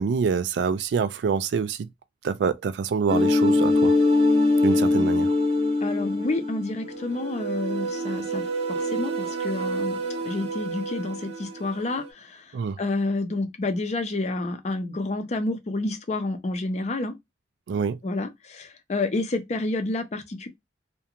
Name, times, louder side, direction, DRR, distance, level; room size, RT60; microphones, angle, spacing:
voice 1, 0.0-1.9 2.2-3.9 4.6-5.3 12.5-12.8 17.7-18.0, right 6 dB, 80° right, 0.3 m, -26 dB
sound 1, 3.1-12.1, left 2 dB, 40° right, 0.7 m, -24 dB
voice 2, 5.8-10.0 10.2-17.2 18.0-20.5, left 2 dB, 40° left, 0.5 m, -29 dB
2.4 x 2.2 x 2.8 m
head